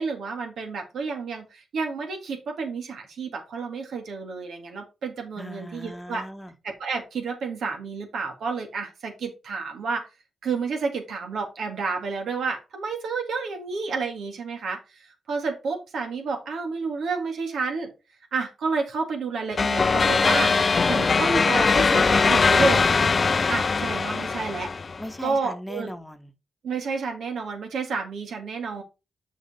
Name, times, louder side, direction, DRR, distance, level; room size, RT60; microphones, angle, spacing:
voice 1, 0.0-6.2 6.6-10.1 10.4-17.9 18.3-20.6 20.9-22.9 23.5-24.7 25.2-25.9 26.6-28.8, right 4 dB, 75° right, 2.1 m, -30 dB
voice 2, 5.4-6.5 25.0-26.3, equal, 10° left, 1.2 m, -38 dB
sound 1, 19.6-25.0, left 4 dB, 45° left, 0.4 m, -21 dB
6.5 x 5.7 x 4.3 m
cardioid pair, 55°, 0 cm